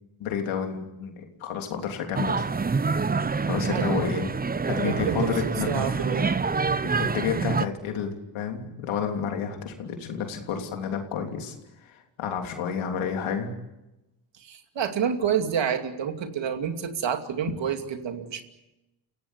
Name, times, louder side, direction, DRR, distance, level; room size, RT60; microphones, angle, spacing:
voice 1, 0.2-2.5 3.4-4.3 4.7-5.9 6.8-11.5 11.9-13.5, left 7 dB, 85° left, 3 dB, 3.4 m, -30 dB
sound 1, 2.2-7.7, right 4 dB, 20° right, 0.8 m, -26 dB
voice 2, 3.7-4.3 4.8-6.3 14.4-18.4, right 8 dB, 65° right, 6 dB, 2.7 m, -29 dB
30.0 x 17.0 x 8.2 m, 0.98 s
supercardioid pair, 65°, 47 cm